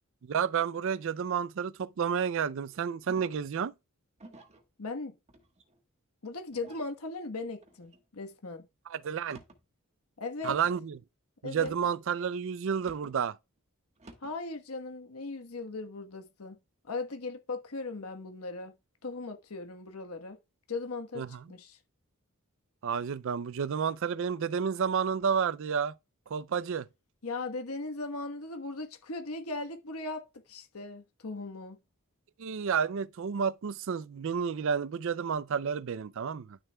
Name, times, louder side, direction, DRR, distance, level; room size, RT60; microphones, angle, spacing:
voice 1, 0.2-3.7 8.9-9.4 10.4-11.0 11.4-13.4 21.2-21.4 22.8-25.9 26.3-26.9 32.4-36.6, right 7 dB, 60° right, 0.4 m, -30 dB
sound 1, 3.1-3.5 4.2-4.6 5.3-5.8 6.5-6.9 7.6-8.0 9.2-9.6 10.4-10.8 11.5-12.0 12.8-13.2 14.0-14.4, right 2 dB, 30° right, 1.3 m, -52 dB
voice 2, 4.8-5.1 6.2-8.7 10.2-10.6 11.4-11.7 14.2-16.5 16.9-18.7 19.0-20.4 20.7-21.8 27.2-30.2 30.5-31.8, left 3 dB, 80° left, 1.3 m, -38 dB
12.0 x 6.6 x 2.3 m
head